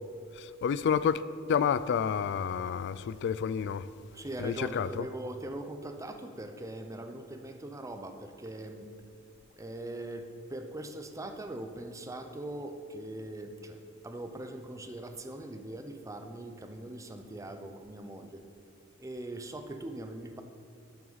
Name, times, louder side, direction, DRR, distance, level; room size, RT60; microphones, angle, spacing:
voice 1, 0.3-1.2 1.5-3.9 4.4-5.1, left 7 dB, 55° left, 0.3 m, -29 dB
voice 2, 4.1-8.9 9.6-13.8 14.0-18.4 19.0-20.4, right 1 dB, 15° right, 0.6 m, -41 dB
12.0 x 7.9 x 4.0 m
head